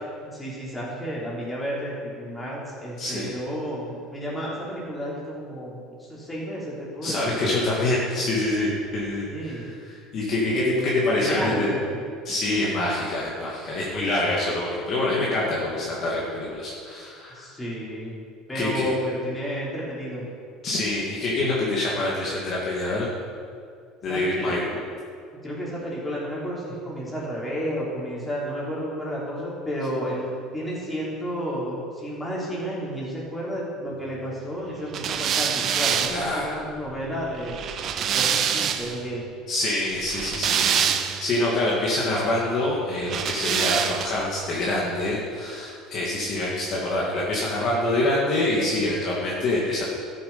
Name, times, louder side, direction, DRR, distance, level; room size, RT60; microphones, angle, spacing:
voice 1, 0.3-7.4 9.3-9.7 10.5-12.0 17.3-18.2 18.5-20.3 24.1-24.8 25.4-37.6 38.0-39.3, equal, 10° left, -6 dB, 3.7 m, -32 dB
voice 2, 3.0-3.3 7.0-11.7 12.2-17.4 18.5-18.9 20.6-23.1 24.0-24.6 36.1-36.6 39.5-49.8, left 2 dB, 40° left, -5 dB, 2.2 m, -26 dB
sound 1, 34.9-39.0 40.0-41.4 43.0-44.3, right 8 dB, 40° right, 0.7 m, -26 dB
13.5 x 7.8 x 5.6 m, 2.2 s
cardioid pair, 145°, 0 cm